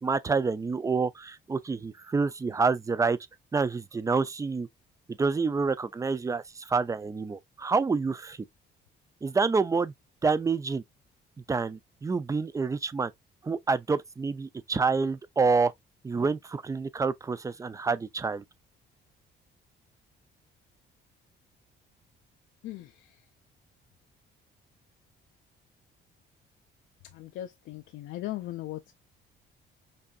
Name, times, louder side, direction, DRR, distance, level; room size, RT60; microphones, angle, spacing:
voice 1, 0.0-3.2 3.5-4.7 5.2-8.4 9.2-9.9 10.2-10.8 11.5-13.1 13.4-15.7 16.0-18.4, right 4 dB, 15° right, 0.4 m, -27 dB
voice 2, 22.6-23.1 27.1-28.9, left 14 dB, 75° left, 0.5 m, -38 dB
5.3 x 2.6 x 2.3 m
cardioid pair, 115°, 20 cm